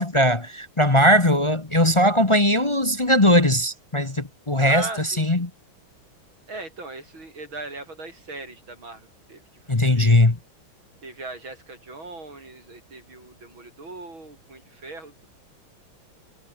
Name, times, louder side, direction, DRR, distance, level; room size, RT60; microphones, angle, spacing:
voice 1, 0.0-5.5 9.7-10.4, left 1 dB, 20° left, 1.1 m, -19 dB
voice 2, 4.6-5.5 6.5-9.4 9.8-10.2 11.0-15.3, right 2 dB, 75° right, 7.6 m, -38 dB
omnidirectional pair, 2.2 m